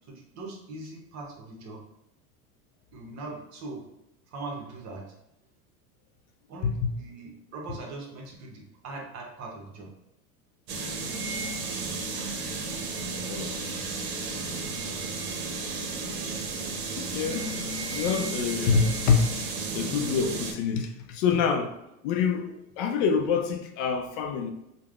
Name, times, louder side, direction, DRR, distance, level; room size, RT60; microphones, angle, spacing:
voice 1, 0.1-1.8 2.9-3.8 4.3-5.1 6.5-9.9 22.2-22.3, right 2 dB, 40° right, 0.8 m, -41 dB
voice 2, 6.6-6.9 13.2-13.6 17.0-17.5 17.9-19.4 19.7-21.8 22.0-24.5, left 6 dB, 60° left, 0.5 m, -26 dB
sound 1, 10.7-20.5, right 3 dB, 70° right, 0.7 m, -33 dB
3.3 x 2.1 x 2.3 m
hypercardioid pair, 100°, 44 cm